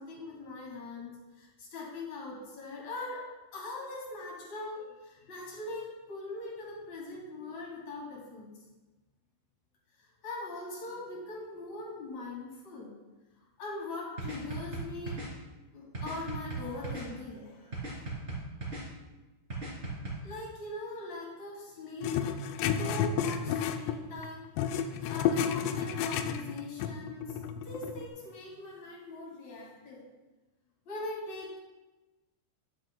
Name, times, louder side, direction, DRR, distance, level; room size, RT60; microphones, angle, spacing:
voice 1, 0.0-3.2 3.5-8.5 10.0-12.9 13.4-15.2 15.7-18.2 20.2-22.3 22.8-27.4 27.6-30.0 30.8-31.6, left 2 dB, 45° left, -4 dB, 2.9 m, -41 dB
sound 1, 14.2-15.3 15.9-17.1 17.7-18.8 19.5-20.1, right 3 dB, 25° right, 1.5 m, -37 dB
sound 2, 22.0-24.3 24.6-28.1, left 8 dB, 90° left, 3.2 m, -31 dB
11.5 x 10.5 x 2.2 m, 1.2 s
omnidirectional pair, 5.7 m